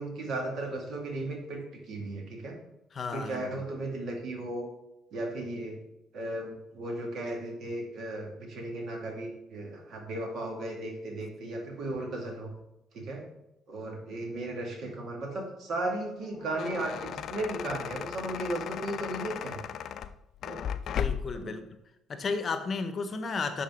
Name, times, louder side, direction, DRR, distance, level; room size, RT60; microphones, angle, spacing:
voice 1, 0.0-2.6 3.1-4.7 5.1-5.8 6.1-12.5 12.9-13.3 13.7-19.6 20.4-20.6 21.3-21.6, right 1 dB, 60° right, 1 dB, 2.1 m, -35 dB
voice 2, 2.9-3.6 20.9-21.6 22.1-23.6, left 4 dB, 40° left, 9 dB, 0.8 m, -33 dB
sound 1, 16.2-21.4, left 9 dB, 60° left, 0.4 m, -36 dB
10.5 x 4.2 x 3.7 m, 0.86 s
supercardioid pair, 70°, 0 cm